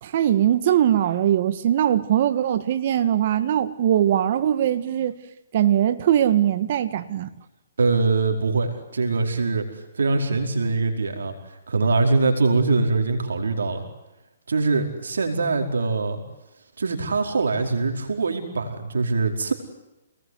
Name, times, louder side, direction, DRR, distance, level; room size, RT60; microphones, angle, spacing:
voice 1, 0.0-5.1 5.5-7.3, right 11 dB, 50° right, 2.0 m, -21 dB
voice 2, 7.8-13.8 14.5-16.2 16.8-19.5, right 3 dB, 85° right, 4.9 m, -23 dB
28.5 x 20.0 x 9.7 m
hypercardioid pair, 145°, 0 cm